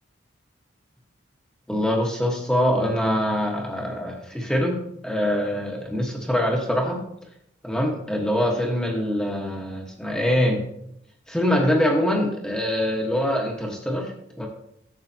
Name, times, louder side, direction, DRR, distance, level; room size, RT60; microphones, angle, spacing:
voice 1, 1.7-4.8 5.0-7.0 7.6-10.6 11.3-14.5, equal, 5° left, 0 dB, 1.2 m, -24 dB
11.5 x 7.9 x 2.8 m, 0.73 s
head